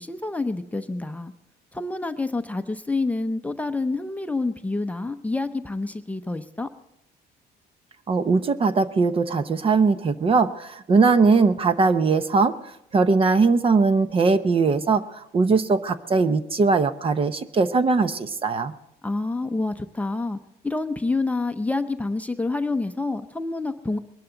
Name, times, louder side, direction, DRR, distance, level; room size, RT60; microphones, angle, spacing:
voice 1, 0.0-1.3 1.7-6.7 19.0-20.4 20.6-24.0, left 3 dB, 10° left, 7 dB, 0.7 m, -27 dB
voice 2, 8.1-12.5 12.9-18.7, right 4 dB, 35° right, 12 dB, 0.8 m, -20 dB
21.5 x 11.5 x 3.9 m, 0.83 s
cardioid pair, 110°, 17 cm